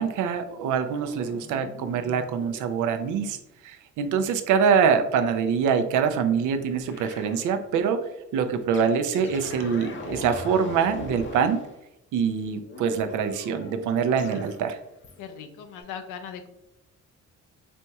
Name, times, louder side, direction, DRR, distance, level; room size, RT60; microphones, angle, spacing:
voice 1, 0.0-3.4 3.6-8.0 8.3-11.6 12.1-14.8, right 6 dB, 80° right, 8 dB, 0.5 m, -24 dB
sound 1, 1.0-2.7 6.9-7.4 8.7-11.7 12.6-14.6 15.0-15.4 15.8-15.9, left 3 dB, 40° left, 0.6 m, -41 dB
voice 2, 15.2-16.5, left 7 dB, 90° left, 7 dB, 0.5 m, -39 dB
4.2 x 2.8 x 2.3 m, 0.88 s
cardioid pair, 90°, 30 cm